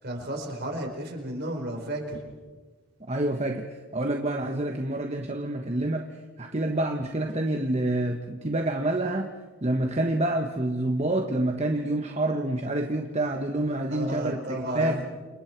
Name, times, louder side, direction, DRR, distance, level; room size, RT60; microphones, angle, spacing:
voice 1, 0.0-2.2 13.9-15.0, right 1 dB, 50° right, 3 dB, 4.7 m, -33 dB
voice 2, 3.1-9.3 9.6-15.0, right 1 dB, 30° right, 4 dB, 1.3 m, -27 dB
29.0 x 28.5 x 4.6 m, 1.3 s
head